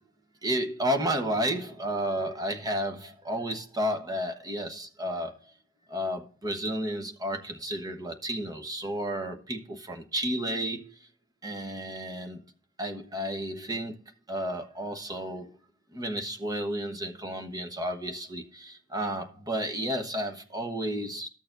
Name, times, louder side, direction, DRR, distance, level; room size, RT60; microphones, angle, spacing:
voice 1, 0.4-5.3 5.9-10.9 11.4-12.4 12.8-13.9 14.3-15.5 15.9-21.3, equal, 15° right, 1.1 m, -32 dB
14.0 x 6.8 x 2.6 m
head